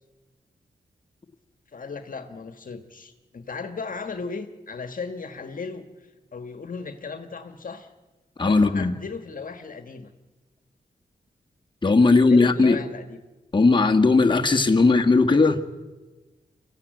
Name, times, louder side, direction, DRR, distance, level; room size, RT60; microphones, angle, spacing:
voice 1, 1.7-7.9 8.4-10.1 12.0-13.2 14.7-14.9, left 4 dB, 55° left, 8 dB, 1.6 m, -36 dB
voice 2, 8.4-8.9 11.8-12.8 13.5-15.6, left 3 dB, 30° left, 3 dB, 1.7 m, -18 dB
24.5 x 15.0 x 9.3 m, 1.2 s
cardioid pair, 55°, 17 cm